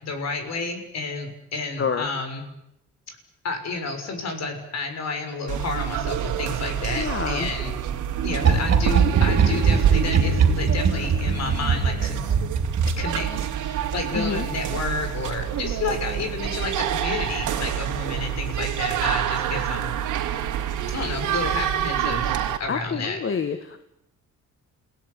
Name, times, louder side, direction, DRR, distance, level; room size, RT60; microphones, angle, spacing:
voice 1, 0.0-2.4 3.1-3.2 3.4-7.7 8.2-12.2 13.0-13.3 13.6-19.9 20.9-23.6, left 3 dB, 60° left, 6 dB, 6.7 m, -31 dB
sound 1, 5.5-22.6, right 9 dB, 85° right, 2.8 m, -27 dB
voice 2, 7.0-7.5 14.1-14.5 22.7-23.8, left 6 dB, 45° left, 10 dB, 1.7 m, -28 dB
sound 2, 8.4-13.6 15.4-15.7 16.0-16.1, right 5 dB, 60° right, 3.5 m, -22 dB
28.5 x 17.5 x 9.8 m, 0.82 s
cardioid pair, 90°, 30 cm